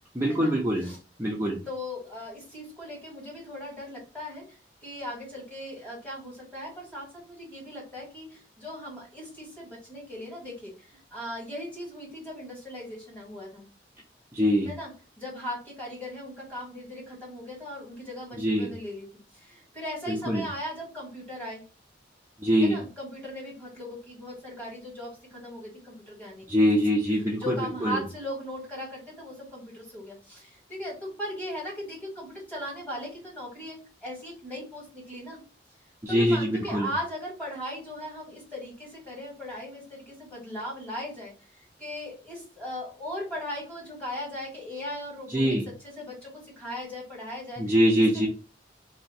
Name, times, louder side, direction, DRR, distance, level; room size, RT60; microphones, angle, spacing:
voice 1, 0.1-0.9 1.2-1.6 14.3-14.7 18.4-18.7 20.1-20.4 22.4-22.8 26.5-27.6 27.8-28.0 36.0-36.9 45.3-45.7 47.6-48.3, equal, 15° right, -3 dB, 0.7 m, -23 dB
voice 2, 1.7-13.7 14.6-19.1 19.3-21.6 22.6-26.6 27.1-35.4 36.1-48.3, left 1 dB, 10° left, -5 dB, 2.1 m, -38 dB
3.1 x 2.8 x 4.2 m, 0.36 s
head